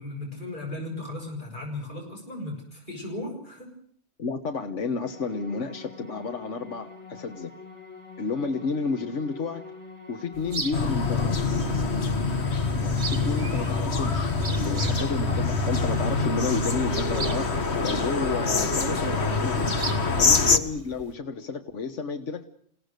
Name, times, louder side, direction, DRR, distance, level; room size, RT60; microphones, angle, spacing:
voice 1, 0.0-3.7 14.7-15.0, left 2 dB, 45° left, 0 dB, 6.9 m, -36 dB
voice 2, 4.2-7.5 8.2-9.7 10.1-11.4 12.8-19.8 20.2-22.4, left 4 dB, 85° left, 6 dB, 1.6 m, -31 dB
sound 1, 5.0-19.6, left 4 dB, 25° left, 5.3 m, -45 dB
sound 2, 10.3-21.1, right 3 dB, 65° right, 2.2 m, -40 dB
sound 3, 10.7-20.6, left 3 dB, 65° left, 1.9 m, -25 dB
29.0 x 17.5 x 6.7 m, 0.63 s
omnidirectional pair, 1.2 m